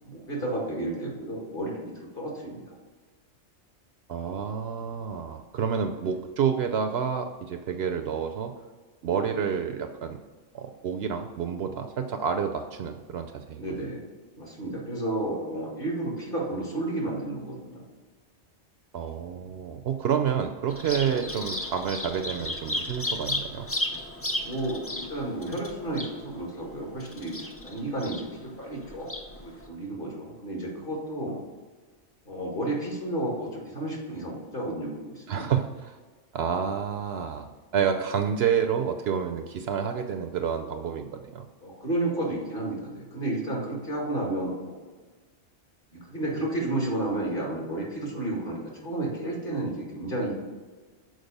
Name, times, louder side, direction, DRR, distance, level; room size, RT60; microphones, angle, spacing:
voice 1, 0.0-2.7 9.0-9.2 13.5-14.0 14.3-17.8 21.1-21.3 24.4-31.4 32.3-35.5 41.6-44.8 45.9-50.3, right 1 dB, 45° left, -3 dB, 2.1 m, -32 dB
voice 2, 4.1-8.5 9.0-10.2 10.5-13.6 18.9-23.7 35.3-36.0 36.3-41.5, right 7 dB, 65° right, 6 dB, 0.7 m, -29 dB
Bird vocalization bird call bird song, 20.7-29.7, left 1 dB, 25° left, 0.3 m, -35 dB
6.4 x 4.6 x 5.2 m, 1.3 s
omnidirectional pair, 1.2 m